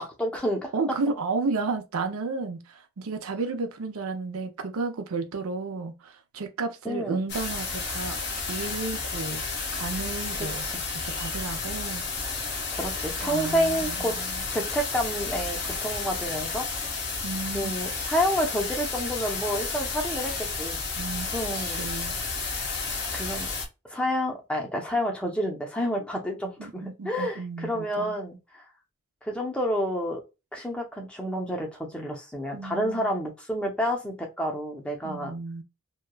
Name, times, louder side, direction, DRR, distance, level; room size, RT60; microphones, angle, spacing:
voice 1, 0.0-0.7 6.8-7.2 10.4-10.8 12.7-14.1 14.5-16.6 17.4-21.8 23.1-23.5 23.9-28.6 29.2-30.2 30.5-35.3, equal, 5° left, 0.5 m, -29 dB
voice 2, 0.7-9.4 9.7-10.7 11.0-12.1 13.2-14.4 17.2-17.7 21.0-21.3 21.5-22.2 26.6-28.1 32.5-33.1 35.0-35.6, right 3 dB, 85° right, 0.5 m, -32 dB
sound 1, 7.3-23.7, left 4 dB, 50° left, 0.6 m, -32 dB
2.8 x 2.2 x 2.2 m
head